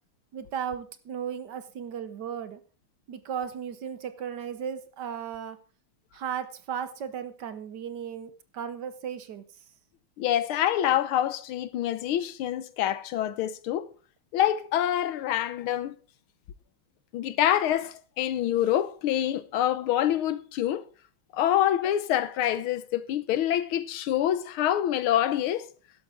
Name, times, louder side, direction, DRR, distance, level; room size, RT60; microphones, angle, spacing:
voice 1, 0.3-2.6 3.1-5.6 6.1-9.4, right 8 dB, 60° right, 1.4 m, -35 dB
voice 2, 10.2-13.9 14.3-15.9 17.1-20.8 21.3-25.6, left 11 dB, 85° left, 1.7 m, -26 dB
12.5 x 11.5 x 3.7 m
omnidirectional pair, 2.2 m